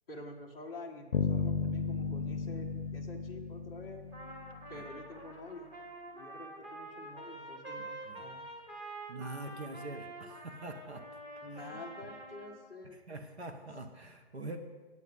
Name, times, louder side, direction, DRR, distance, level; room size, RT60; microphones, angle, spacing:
voice 1, 0.1-4.0 4.7-5.7 6.1-8.4 11.4-13.0, left 2 dB, 5° left, -5 dB, 0.5 m, -48 dB
sound 1, 1.1-4.9, left 6 dB, 55° left, 0.6 m, -34 dB
Trumpet, 4.1-12.6, right 2 dB, 15° right, 1.2 m, -47 dB
voice 2, 9.1-11.0 11.5-11.7 13.1-14.6, right 2 dB, 75° right, 5 dB, 1.3 m, -44 dB
9.4 x 8.3 x 5.4 m, 1.4 s
figure-of-eight pair, 140°, 32 cm